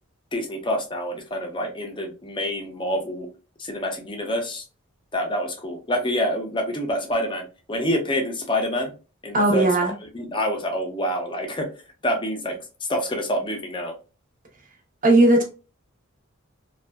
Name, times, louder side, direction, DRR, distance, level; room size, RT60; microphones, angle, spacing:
voice 1, 0.3-3.3 3.6-4.6 5.1-8.9 9.2-9.7 10.1-11.7 12.0-12.6 12.9-13.9, equal, 25° left, 0.6 m, -27 dB
voice 2, 9.3-9.9 15.0-15.4, right 2 dB, 40° right, 0.7 m, -17 dB
2.5 x 2.3 x 2.3 m
head